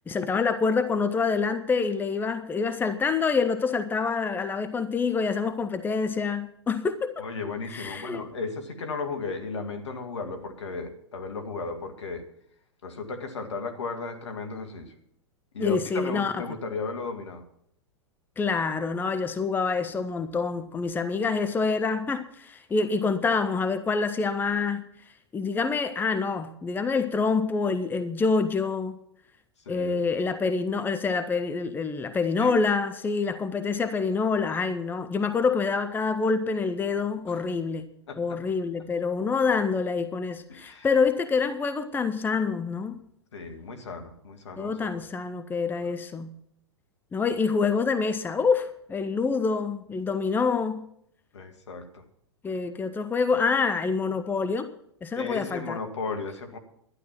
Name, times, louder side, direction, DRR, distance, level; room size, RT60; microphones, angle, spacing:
voice 1, 0.1-7.2 7.7-8.3 15.6-16.4 18.4-24.8 25.3-29.0 29.7-37.9 38.2-43.0 44.6-46.3 47.1-50.9 52.4-54.7 55.0-55.8, left 4 dB, 15° left, 0.7 m, -26 dB
voice 2, 7.2-12.3 12.8-14.9 15.5-17.4 29.7-30.0 32.4-32.5 37.3-37.4 38.1-38.4 40.5-40.9 43.3-45.1 45.8-45.9 51.3-52.0 55.2-56.6, left 4 dB, 75° left, 2.0 m, -35 dB
11.5 x 11.0 x 5.9 m
figure-of-eight pair, 100°, 15 cm